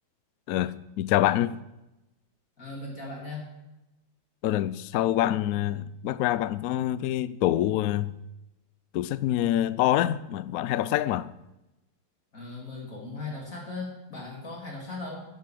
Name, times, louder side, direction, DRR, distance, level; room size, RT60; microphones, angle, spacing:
voice 1, 0.5-1.6 4.4-8.2 8.9-11.3, left 13 dB, 80° left, 0.7 m, -26 dB
voice 2, 2.6-3.5 12.3-15.2, left 3 dB, 40° left, 3.4 m, -38 dB
10.5 x 9.5 x 7.5 m
omnidirectional pair, 2.1 m